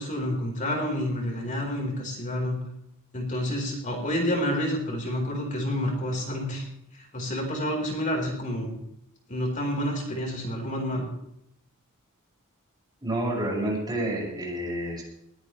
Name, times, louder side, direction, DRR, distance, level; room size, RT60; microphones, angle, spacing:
voice 1, 0.0-2.6 3.1-6.7 6.9-8.8 9.3-11.1, equal, 35° left, 0 dB, 4.5 m, -29 dB
voice 2, 13.0-15.0, right 1 dB, 20° right, -3 dB, 6.7 m, -29 dB
21.0 x 17.5 x 3.3 m, 0.77 s
head